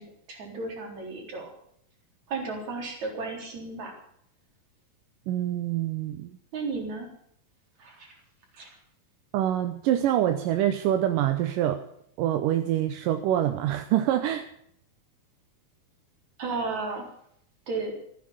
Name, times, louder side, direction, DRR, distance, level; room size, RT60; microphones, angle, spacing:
voice 1, 0.0-1.5 2.3-3.9 6.5-7.1 7.8-8.1 8.5-8.7 16.4-17.1 17.7-18.0, right 3 dB, 55° right, 1 dB, 5.0 m, -34 dB
voice 2, 5.3-6.4 9.3-11.8 12.2-14.5, right 12 dB, 75° right, 7 dB, 2.4 m, -25 dB
14.5 x 9.9 x 8.2 m, 0.68 s
omnidirectional pair, 4.1 m